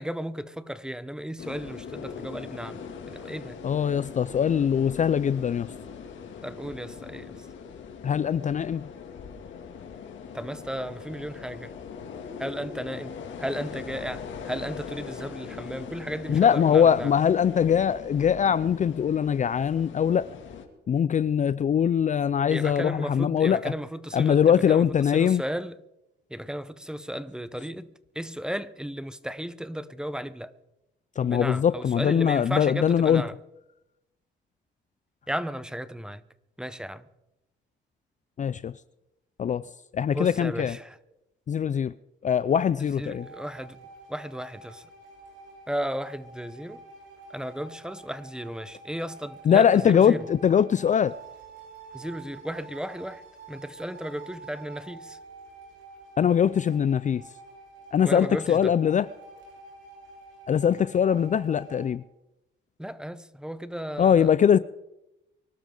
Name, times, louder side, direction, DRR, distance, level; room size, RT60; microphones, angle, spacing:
voice 1, 0.0-3.6 6.4-7.5 10.3-11.7 12.4-17.1 22.5-25.8 26.3-30.5 31.2-33.3 35.3-36.2 36.6-37.1 40.1-41.0 42.8-43.8 44.1-44.9 45.7-46.8 47.3-50.2 51.9-55.2 58.0-58.7 62.8-64.3, equal, 5° right, 0.9 m, -35 dB
sound 1, 1.4-20.7, left 6 dB, 70° left, 2.6 m, -41 dB
voice 2, 3.6-5.7 8.0-8.9 16.3-20.3 20.9-23.7 24.1-25.4 31.2-33.2 38.4-38.7 39.4-39.7 39.9-40.8 41.5-41.9 42.2-43.3 49.5-51.2 56.2-57.2 57.9-59.1 60.5-62.0 64.0-64.6, left 8 dB, 40° left, 0.4 m, -22 dB
sound 2, 43.1-61.9, right 3 dB, 75° right, 6.7 m, -48 dB
24.0 x 12.5 x 3.9 m
cardioid pair, 90°, 20 cm